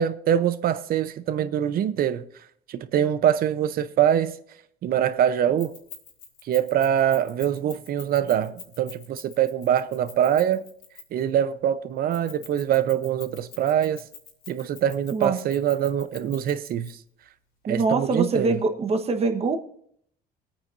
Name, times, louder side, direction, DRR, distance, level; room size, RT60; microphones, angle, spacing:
voice 1, 0.0-2.2 2.7-4.3 4.8-5.7 6.5-10.6 11.1-14.0 14.5-17.0 17.6-18.5, right 10 dB, 60° right, 0.8 m, -24 dB
Keys jangling, 5.6-11.3 12.1-16.9, left 8 dB, 75° left, 3.1 m, -44 dB
voice 2, 17.7-19.6, right 4 dB, 35° right, 1.2 m, -24 dB
23.0 x 8.9 x 2.6 m
cardioid pair, 110°, 17 cm